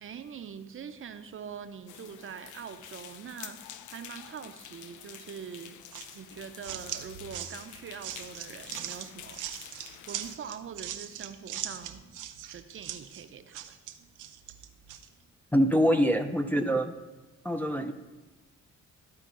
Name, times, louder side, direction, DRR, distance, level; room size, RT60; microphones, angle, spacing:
voice 1, 0.0-3.6 3.9-5.8 6.1-9.6 10.1-12.0 12.5-13.7, right 7 dB, 45° right, 9 dB, 0.6 m, -43 dB
sound 1, 1.9-10.4, left 10 dB, 75° left, 0.5 m, -48 dB
sound 2, 5.9-15.1, right 11 dB, 85° right, 0.6 m, -41 dB
voice 2, 15.5-16.9 17.4-17.9, equal, 5° left, 4 dB, 0.4 m, -25 dB
12.5 x 4.5 x 3.8 m, 1.2 s
cardioid pair, 90°, 30 cm